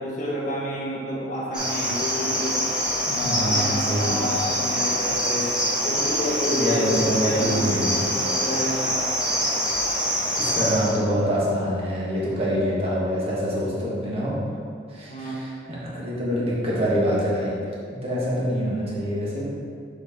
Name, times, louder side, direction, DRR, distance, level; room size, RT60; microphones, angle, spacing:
voice 1, 0.0-2.7 3.1-5.5 5.8-9.1 15.1-15.4, equal, 40° left, -5 dB, 1.2 m, -29 dB
Cricket, 1.5-10.9, equal, 5° right, 1.3 m, -25 dB
voice 2, 3.1-4.5 6.5-8.0 10.4-14.4 14.9-17.5 17.9-19.5, equal, 30° right, -7 dB, 1.5 m, -25 dB
7.1 x 4.6 x 3.6 m, 2.3 s
head